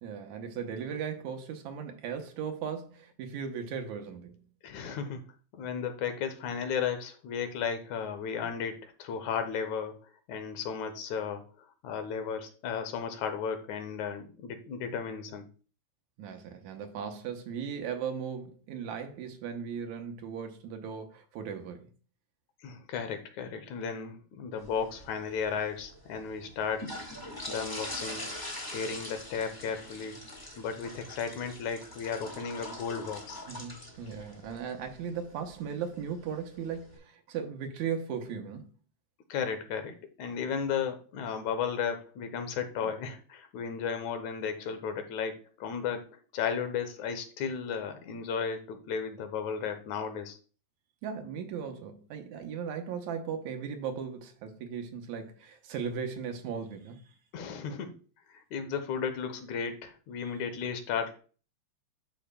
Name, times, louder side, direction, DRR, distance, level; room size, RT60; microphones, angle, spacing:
voice 1, 0.0-4.4 16.2-21.9 33.5-38.7 42.8-42.9 51.0-57.0 60.2-60.3, right 7 dB, 75° right, 2.2 m, -37 dB
voice 2, 4.6-5.2 5.5-10.0 10.3-11.5 11.8-15.5 22.6-27.0 27.5-28.3 28.7-30.2 30.6-33.4 39.3-50.4 57.3-58.0 58.3-61.2, left 6 dB, 80° left, 2.2 m, -34 dB
sound 1, 24.6-37.0, left 1 dB, 15° left, 0.6 m, -44 dB
11.5 x 5.2 x 2.2 m
omnidirectional pair, 3.4 m